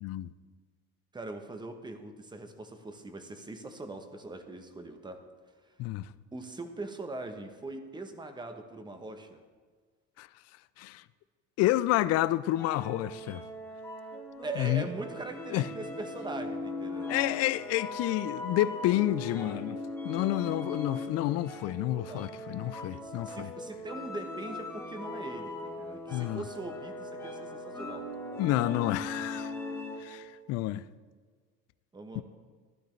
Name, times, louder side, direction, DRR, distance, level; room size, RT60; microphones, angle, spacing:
voice 1, 0.0-0.3 5.8-6.1 10.2-10.3 10.8-11.0 11.6-13.4 14.6-14.8 15.5-15.7 17.1-19.8 20.0-23.5 26.1-26.5 28.4-29.5 30.0-30.9 32.1-32.2, left 15 dB, 50° left, 0.4 m, -29 dB
voice 2, 1.1-5.2 5.7-5.8 6.3-9.4 14.4-17.2 22.1-22.3 22.9-28.1 31.9-32.2, right 2 dB, 15° right, 0.9 m, -41 dB
sound 1, 12.5-30.2, left 2 dB, 5° left, 1.4 m, -39 dB
12.0 x 11.5 x 3.2 m
supercardioid pair, 115°, 32 cm